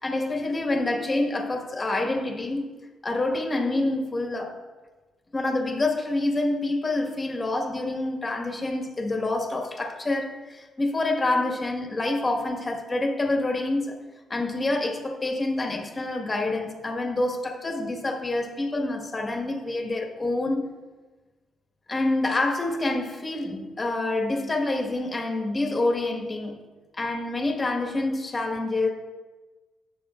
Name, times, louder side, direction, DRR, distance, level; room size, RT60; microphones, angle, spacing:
voice 1, 0.0-2.7 3.0-4.6 5.3-14.0 14.3-20.7 21.9-26.6 26.9-28.9, left 2 dB, 25° left, 1.7 m, -27 dB
17.5 x 6.5 x 2.5 m
cardioid pair, 90°, 0 cm